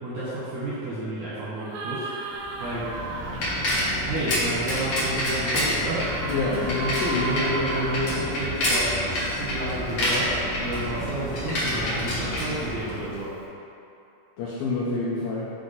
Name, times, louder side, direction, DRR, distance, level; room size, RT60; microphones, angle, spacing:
voice 1, 0.0-2.1 2.6-2.9 4.1-6.1 7.1-13.3, right 1 dB, 70° right, -10 dB, 1.8 m, -30 dB
sound 1, 1.5-3.4 5.6-8.0 11.7-12.0, right 3 dB, 90° right, 2.0 m, -35 dB
Bicycle, 2.4-13.3, left 1 dB, 60° left, 1.5 m, -28 dB
voice 2, 6.3-7.3 14.4-15.5, left 3 dB, 80° left, -7 dB, 2.1 m, -27 dB
9.7 x 3.3 x 4.1 m, 2.8 s
omnidirectional pair, 4.9 m